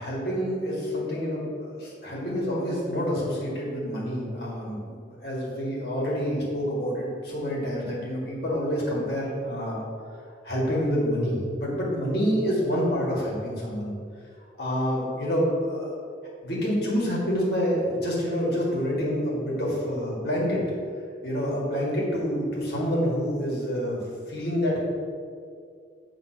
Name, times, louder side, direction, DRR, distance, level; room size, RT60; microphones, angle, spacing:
voice 1, 0.0-9.8 10.4-13.9 14.6-15.9 16.4-20.6 21.2-24.0 24.3-24.8, equal, 60° left, -5 dB, 2.0 m, -27 dB
8.5 x 3.8 x 5.8 m, 2.2 s
head